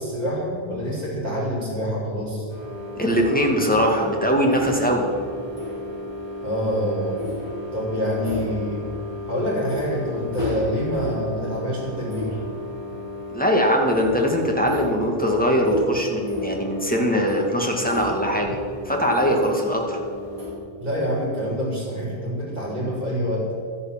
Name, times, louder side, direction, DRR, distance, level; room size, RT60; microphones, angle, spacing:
voice 1, 0.0-2.5 6.4-7.2 7.7-8.8 9.3-12.4 20.8-23.5, equal, 40° right, -5 dB, 5.1 m, -26 dB
sound 1, 2.5-20.5, left 2 dB, 25° right, 4.4 m, -33 dB
voice 2, 3.0-5.1 13.3-18.6 18.9-20.0, equal, 10° left, 0 dB, 2.1 m, -21 dB
13.0 x 11.0 x 7.4 m, 2.3 s
omnidirectional pair, 1.0 m